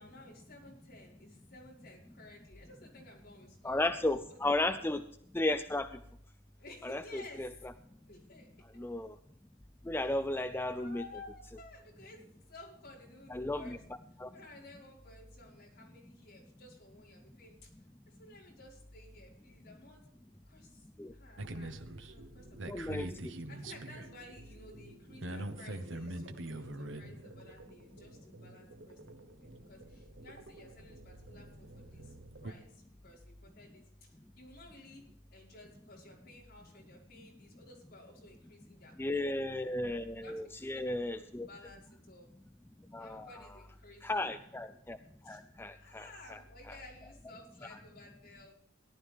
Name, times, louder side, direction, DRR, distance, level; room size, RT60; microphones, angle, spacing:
voice 1, 0.0-3.9 4.2-4.7 6.6-7.6 8.0-8.5 8.7-8.8 10.0-10.2 10.7-13.8 14.3-17.7 18.1-20.1 20.5-23.1 23.5-39.7 40.1-42.3 43.0-44.4 45.2-45.4 45.8-48.5, left 2 dB, 50° left, -4 dB, 5.5 m, -55 dB
voice 2, 3.6-5.0 5.3-5.9 6.8-7.5 8.8-9.1 9.9-11.0 13.3-13.6 14.2-14.3 21.0-21.1 22.7-23.1 39.0-41.5 42.9-43.3 44.0-45.0 45.3-46.1, left 2 dB, 10° left, 9 dB, 0.4 m, -34 dB
sound 1, 21.4-32.5, right 1 dB, 65° right, 1.0 m, -45 dB
18.0 x 11.5 x 3.6 m, 0.70 s
head